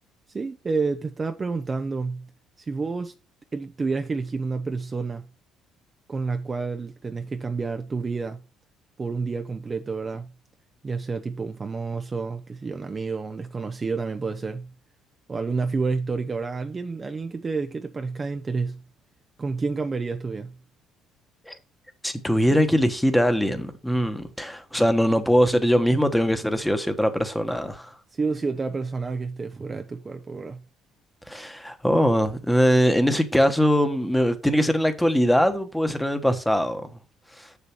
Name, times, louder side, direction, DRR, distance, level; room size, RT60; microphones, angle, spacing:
voice 1, 0.3-2.3 2.6-3.2 3.5-5.3 6.1-8.4 9.0-10.3 10.8-14.7 15.3-18.8 19.4-20.5 28.1-30.6, right 4 dB, 25° right, 0.7 m, -29 dB
voice 2, 22.0-27.9 31.3-36.9 37.4-37.5, equal, 5° left, 1.2 m, -22 dB
7.0 x 6.6 x 4.5 m
cardioid pair, 110°, 0 cm